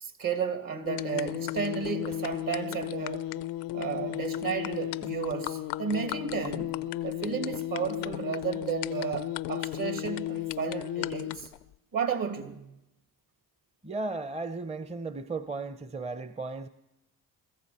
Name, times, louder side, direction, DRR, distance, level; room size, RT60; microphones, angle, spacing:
voice 1, 0.0-3.2 3.7-6.8 7.0-11.5 11.9-12.6, right 7 dB, 60° right, 2.4 m, -33 dB
sound 1, 0.9-11.6, left 14 dB, 90° left, 0.5 m, -34 dB
voice 2, 13.8-16.7, right 3 dB, 15° right, 0.6 m, -35 dB
23.0 x 14.0 x 4.3 m
supercardioid pair, 55°, 39 cm